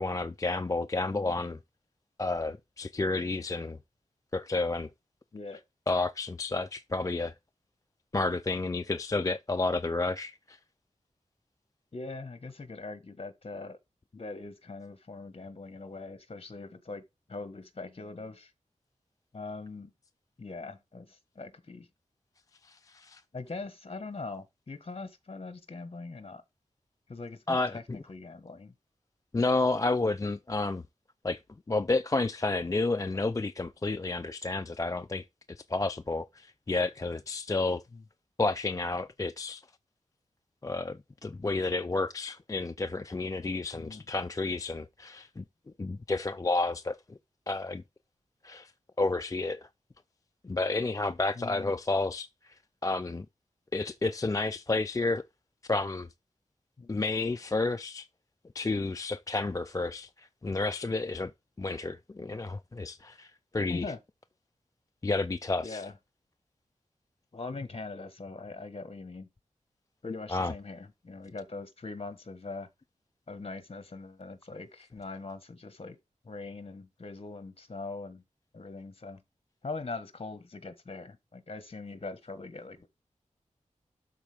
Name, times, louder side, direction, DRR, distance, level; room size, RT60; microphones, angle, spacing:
voice 1, 0.0-1.6 2.2-3.8 4.3-4.9 5.9-7.3 8.1-10.6 22.6-23.2 27.5-28.0 29.3-30.8 31.2-31.4 31.7-37.8 38.4-39.6 40.6-45.4 45.8-47.2 47.5-47.8 48.4-48.7 49.0-49.7 50.4-52.5 52.8-53.3 53.7-55.2 55.7-56.1 56.9-58.1 58.5-61.3 61.6-63.9 65.0-65.9 70.3-70.5, left 3 dB, 25° left, 0.4 m, -31 dB
voice 2, 1.1-1.4 5.3-5.6 11.9-13.8 14.1-17.0 17.3-18.5 19.3-19.9 20.4-21.9 23.3-26.4 27.1-28.7 37.9-38.0 43.7-44.0 51.4-51.7 56.8-57.0 63.7-64.0 65.6-65.9 67.3-69.3 70.0-72.7 73.3-75.9 76.2-78.2 78.5-79.2 79.6-82.9, left 3 dB, 45° left, 1.3 m, -41 dB
12.0 x 4.2 x 3.4 m
wide cardioid pair, 95°, 13 cm